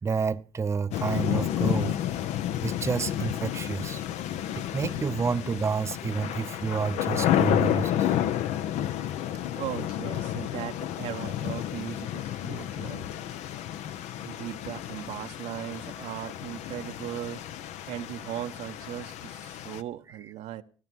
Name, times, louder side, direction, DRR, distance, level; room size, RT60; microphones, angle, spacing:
voice 1, 0.0-2.0 2.6-4.0 4.6-8.2, right 5 dB, 25° right, 0.6 m, -29 dB
sound 1, 0.9-19.8, left 11 dB, 85° left, 0.8 m, -31 dB
voice 2, 9.5-13.1 14.2-17.4 17.9-20.6, right 12 dB, 90° right, 1.0 m, -38 dB
17.0 x 11.5 x 6.1 m
cardioid pair, 105°, 11 cm